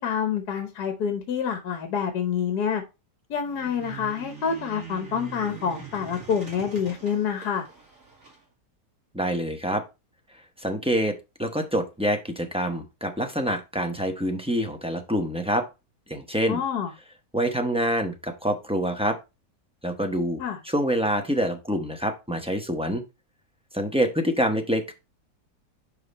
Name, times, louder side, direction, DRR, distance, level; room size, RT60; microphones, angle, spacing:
voice 1, 0.0-2.8 3.3-7.6 16.5-16.9 20.4-20.6, left 7 dB, 70° left, 1.5 m, -27 dB
sound 1, 3.4-8.4, right 7 dB, 50° right, 2.8 m, -43 dB
voice 2, 9.1-9.8 10.6-15.7 16.1-16.6 17.3-19.2 19.8-23.0 23.7-24.9, equal, 5° right, 0.5 m, -26 dB
5.7 x 5.1 x 4.1 m
omnidirectional pair, 1.8 m